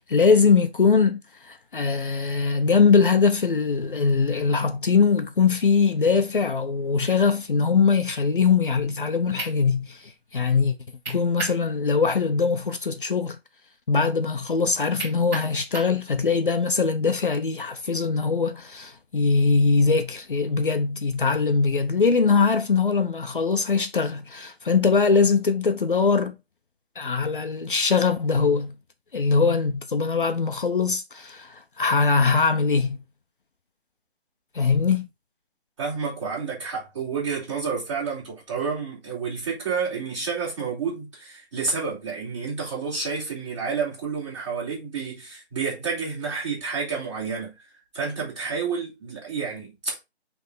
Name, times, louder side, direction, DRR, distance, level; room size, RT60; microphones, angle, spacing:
voice 1, 0.0-10.8 11.1-13.4 13.9-26.4 27.0-28.7 29.1-33.0 34.5-35.1, left 5 dB, 50° left, 0.8 m, -22 dB
sound 1, 9.0-9.1 9.4-9.6 11.1-11.6 12.0-12.1 15.0-16.0, right 3 dB, 10° right, 4.6 m, -32 dB
voice 2, 35.8-47.6 47.9-50.0, right 5 dB, 30° right, 4.2 m, -30 dB
8.3 x 3.6 x 3.9 m
hypercardioid pair, 175°, 33 cm